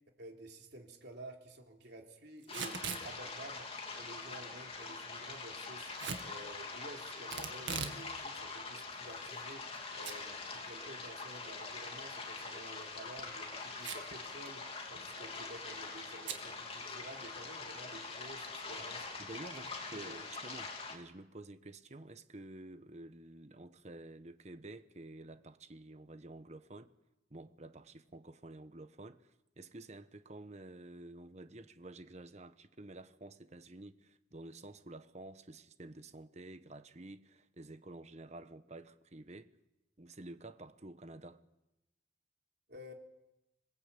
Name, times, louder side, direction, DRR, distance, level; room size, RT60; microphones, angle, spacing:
voice 1, 0.2-3.6 3.9-19.0 19.5-20.3 42.7-42.9, right 1 dB, 60° right, 3.4 m, -52 dB
Packing tape duct tape / Tearing, 2.4-3.1 6.0-6.3 7.3-8.0 8.4-8.5 9.2-9.8 10.0-10.1 10.5-10.6 12.6-12.9 13.8-14.2 14.5-14.6 14.8-15.1 16.2-16.4, right 6 dB, 80° right, 2.0 m, -40 dB
sound 1, 2.5-21.0, left 4 dB, 30° left, 3.1 m, -44 dB
voice 2, 19.2-26.9 27.3-39.5 40.0-41.4, right 2 dB, 35° right, 1.1 m, -50 dB
26.5 x 19.0 x 8.5 m
head